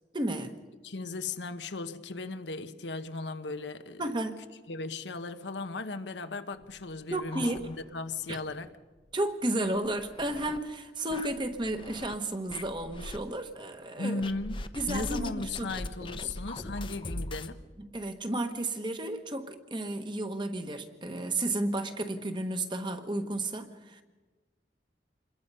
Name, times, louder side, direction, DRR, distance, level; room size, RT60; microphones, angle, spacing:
voice 1, 0.1-0.5 4.0-4.4 7.1-7.7 8.3-8.4 9.1-14.2 14.7-15.9 16.2-16.3 17.8-24.0, right 1 dB, 25° right, 1.3 m, -33 dB
voice 2, 0.8-4.1 4.7-8.7 14.0-17.6, left 3 dB, 75° left, 1.0 m, -36 dB
sound 1, 6.6-8.2 8.5-8.6 9.0-9.1 9.7-10.6 11.1-12.2 12.5-13.2 14.2-17.5, left 2 dB, 30° left, 0.8 m, -40 dB
27.5 x 21.5 x 5.5 m
head